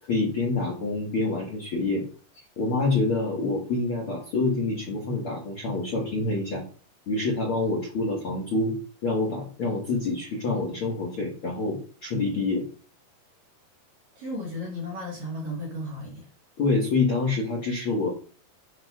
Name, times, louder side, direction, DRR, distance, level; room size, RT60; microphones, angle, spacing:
voice 1, 0.1-2.0 2.6-6.6 7.1-8.8 9.0-12.6 16.6-18.1, left 3 dB, 60° left, -3 dB, 1.4 m, -26 dB
voice 2, 14.2-16.3, left 1 dB, 55° right, -2 dB, 2.3 m, -34 dB
7.7 x 6.3 x 2.4 m, 0.38 s
omnidirectional pair, 4.7 m